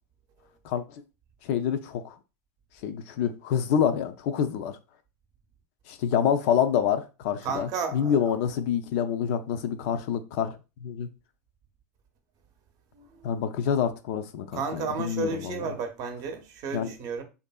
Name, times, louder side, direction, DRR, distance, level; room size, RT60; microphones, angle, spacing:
voice 1, 1.4-2.1 2.8-4.7 5.9-11.1 13.2-15.6 16.7-16.9, left 8 dB, 55° left, 0.4 m, -27 dB
voice 2, 7.4-8.4 12.9-13.3 14.5-17.2, right 4 dB, 40° right, 0.7 m, -33 dB
2.6 x 2.5 x 2.3 m
hypercardioid pair, 95°, 9 cm